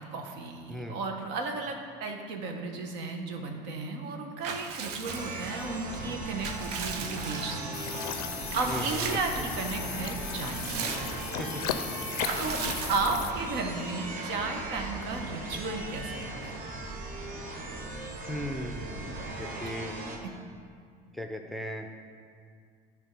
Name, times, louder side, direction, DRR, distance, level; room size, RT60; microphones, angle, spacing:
voice 1, 0.0-7.7 8.2-10.9 12.4-16.6 20.2-20.3, right 3 dB, 65° right, 4 dB, 1.0 m, -34 dB
Water / Bathtub (filling or washing) / Liquid, 4.4-5.7 6.1-7.8 8.5-9.4 9.8-9.9 10.2-11.4 12.2-13.4, right 6 dB, 80° right, 0.6 m, -37 dB
sound 1, 5.0-20.2, right 2 dB, 45° right, 1.2 m, -38 dB
sound 2, 7.7-13.3, left 11 dB, 85° left, 0.4 m, -37 dB
voice 2, 8.6-9.1 9.4-9.5 11.4-11.6 18.3-20.0 21.1-21.9, equal, ahead, 4 dB, 0.6 m, -37 dB
9.9 x 3.5 x 5.2 m, 2.2 s
hypercardioid pair, 80°, 20 cm